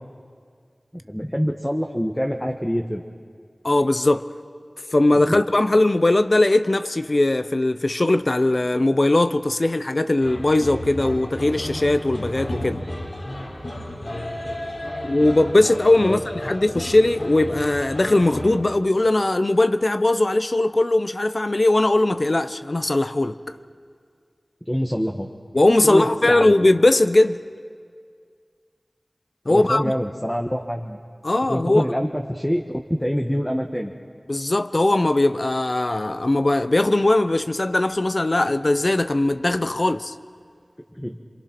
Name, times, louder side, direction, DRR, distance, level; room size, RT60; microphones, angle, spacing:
voice 1, 0.9-3.0 5.1-5.4 16.0-16.2 24.7-25.3 25.8-26.5 29.5-31.0 31.5-32.6 32.9-33.9 41.0-41.2, equal, 5° left, 1.3 m, -25 dB
voice 2, 3.6-4.2 4.9-12.8 15.0-23.5 25.5-27.4 29.5-29.9 31.2-32.1 34.3-40.1, left 2 dB, 50° left, 0.7 m, -19 dB
sound 1, 10.2-18.6, left 1 dB, 65° left, 3.6 m, -33 dB
27.5 x 24.0 x 6.0 m
wide cardioid pair, 50°, 0 cm